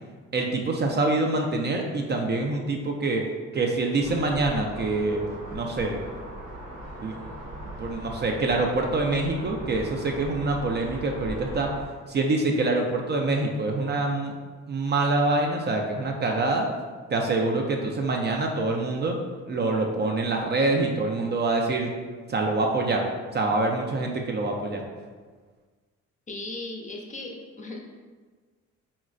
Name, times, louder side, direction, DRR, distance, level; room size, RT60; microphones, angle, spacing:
voice 1, 0.3-3.2 3.5-5.2 5.5-6.0 7.0-7.2 7.8-11.7 12.1-14.3 14.7-16.7 17.1-19.2 19.5-21.9 22.3-23.0 23.3-24.9, right 2 dB, 35° right, 1 dB, 0.4 m, -25 dB
sound 1, 4.0-11.8, right 1 dB, 80° right, 0.9 m, -39 dB
voice 2, 26.3-27.8, left 2 dB, 25° left, 0 dB, 0.5 m, -37 dB
4.0 x 2.1 x 2.4 m, 1.5 s
cardioid pair, 90°, 30 cm